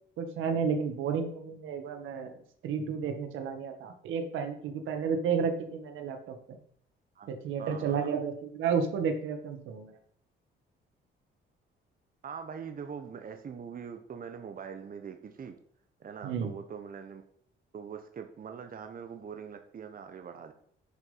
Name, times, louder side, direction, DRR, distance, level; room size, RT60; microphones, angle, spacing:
voice 1, 0.2-2.3 2.6-6.6 7.3-9.9 16.2-16.5, right 6 dB, 85° right, 5 dB, 1.8 m, -32 dB
voice 2, 7.6-8.1 12.2-15.6 16.0-17.2 17.7-20.5, right 7 dB, 45° right, 6 dB, 1.2 m, -42 dB
10.5 x 5.4 x 5.7 m, 0.63 s
cardioid pair, 90°, 20 cm